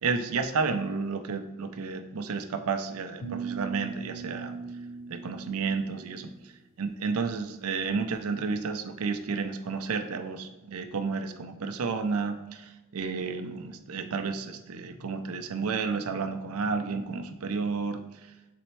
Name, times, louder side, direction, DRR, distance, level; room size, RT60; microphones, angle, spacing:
voice 1, 0.0-4.6 5.1-6.3 6.8-18.0, right 4 dB, 70° right, 7 dB, 0.5 m, -31 dB
sound 1, 3.2-6.3, right 5 dB, 55° left, 0.6 m, -39 dB
4.2 x 3.9 x 3.1 m, 1.1 s
head